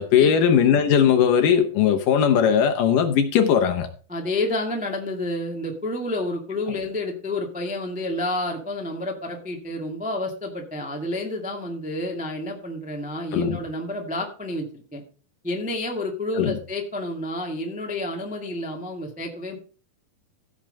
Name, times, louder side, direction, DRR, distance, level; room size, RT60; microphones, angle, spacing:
voice 1, 0.0-3.9 6.7-6.8 13.3-13.6 16.4-16.6, left 8 dB, 70° left, 2.2 m, -19 dB
voice 2, 4.1-15.0 15.4-19.6, left 1 dB, 5° right, 0.5 m, -29 dB
15.5 x 6.1 x 5.3 m
omnidirectional pair, 4.5 m